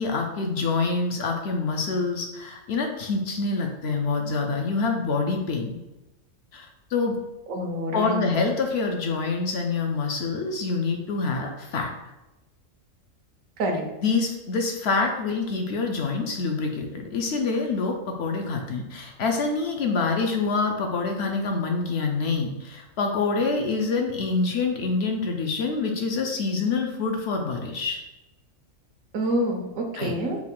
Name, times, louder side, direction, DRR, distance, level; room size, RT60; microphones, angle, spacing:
voice 1, 0.0-5.8 6.5-7.2 7.9-11.9 14.0-28.0 30.0-30.1, left 4 dB, 65° left, 2 dB, 0.7 m, -26 dB
voice 2, 7.5-8.2 13.6-13.8 29.1-30.4, right 1 dB, 85° right, 2 dB, 1.1 m, -27 dB
4.7 x 2.4 x 3.6 m, 0.99 s
omnidirectional pair, 1.4 m